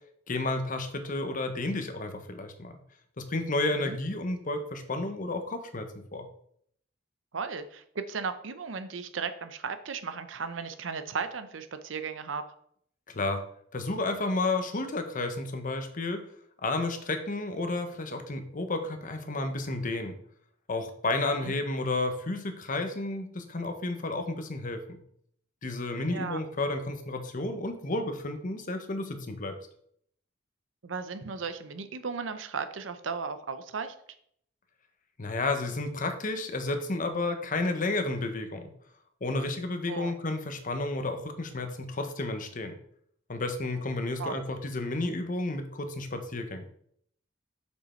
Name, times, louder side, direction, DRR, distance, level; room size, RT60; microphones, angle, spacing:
voice 1, 0.3-2.8 3.2-6.3 13.1-13.4 13.7-16.2 16.6-20.2 20.7-25.0 25.6-29.6 35.2-38.7 39.2-42.7 43.3-46.6, left 2 dB, 45° left, 6 dB, 1.0 m, -31 dB
voice 2, 7.3-12.4 21.3-21.5 26.1-26.4 30.8-33.9 39.9-40.2 44.2-44.4, right 5 dB, 75° right, 10 dB, 0.6 m, -35 dB
6.8 x 5.3 x 4.4 m, 0.67 s
head